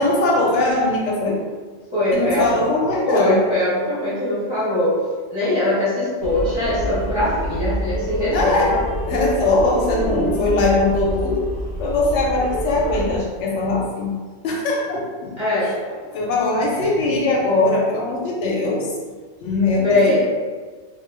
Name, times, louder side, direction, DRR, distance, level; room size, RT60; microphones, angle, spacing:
voice 1, 0.0-1.4 2.1-3.4 8.3-11.5 11.8-14.1 14.4-15.3 15.6-18.9 19.4-20.2, left 2 dB, 75° left, -2 dB, 0.9 m, -21 dB
voice 2, 1.9-2.6 3.0-5.0 5.3-8.8 15.4-15.7 19.8-20.2, left 1 dB, 25° left, -11 dB, 0.8 m, -21 dB
sound 1, 6.2-13.2, equal, 90° right, 1.2 m, -27 dB
2.6 x 2.3 x 3.1 m, 1.4 s
omnidirectional pair, 1.2 m